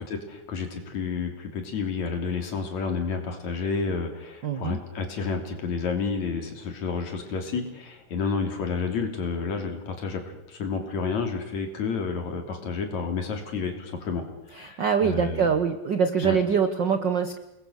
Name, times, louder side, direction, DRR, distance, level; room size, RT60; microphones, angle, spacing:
voice 1, 0.0-14.2 14.5-15.5 16.2-16.4, left 5 dB, 65° left, 4 dB, 4.4 m, -30 dB
voice 2, 4.4-4.8 14.6-17.4, right 6 dB, 60° right, 9 dB, 1.2 m, -24 dB
29.0 x 20.5 x 6.5 m, 0.92 s
omnidirectional pair, 3.5 m